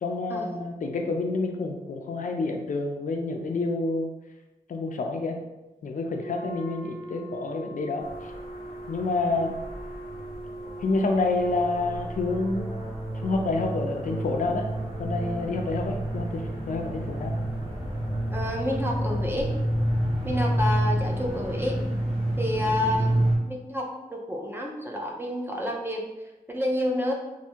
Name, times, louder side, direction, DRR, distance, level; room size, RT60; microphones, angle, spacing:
voice 1, 0.0-4.1 4.7-5.4 5.8-8.3 8.9-9.5 10.8-12.7 13.1-14.7 15.0-17.3, left 3 dB, 60° left, 3 dB, 0.4 m, -28 dB
Wind instrument woodwind instrument, 6.1-12.2, right 1 dB, 70° right, 0.8 m, -40 dB
sound 1, 8.0-23.3, right 1 dB, 40° right, 1.2 m, -30 dB
voice 2, 18.3-19.5 20.2-21.8 22.4-26.0 26.5-27.1, left 1 dB, 15° right, 0 dB, 0.4 m, -29 dB
3.3 x 2.6 x 2.8 m, 1.1 s
wide cardioid pair, 135°, 15 cm